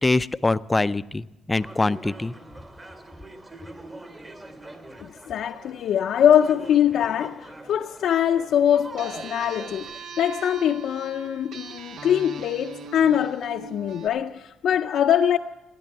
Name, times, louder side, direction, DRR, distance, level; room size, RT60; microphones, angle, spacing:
voice 1, 0.0-2.3, left 2 dB, 20° left, 0.4 m, -24 dB
sound 1, 1.5-10.0, right 2 dB, 30° right, 2.7 m, -43 dB
voice 2, 5.0-15.4, left 9 dB, 70° left, 0.5 m, -23 dB
sound 2, 9.0-14.1, right 5 dB, 65° right, 0.9 m, -40 dB
15.5 x 10.0 x 8.7 m
cardioid pair, 90°, 0 cm